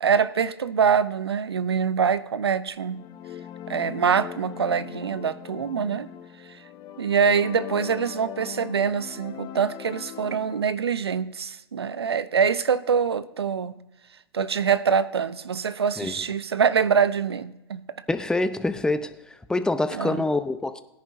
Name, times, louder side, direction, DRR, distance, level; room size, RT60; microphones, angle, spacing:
voice 1, 0.0-3.0 3.7-6.1 6.5-6.6 7.0-13.8 14.3-17.8 19.9-20.2, right 6 dB, 85° right, 0.6 m, -24 dB
sound 1, 2.8-10.7, left 10 dB, 35° left, 0.9 m, -40 dB
voice 2, 18.1-19.1 19.5-20.8, left 2 dB, 5° left, 0.7 m, -25 dB
17.5 x 10.5 x 2.7 m
hypercardioid pair, 105°, 13 cm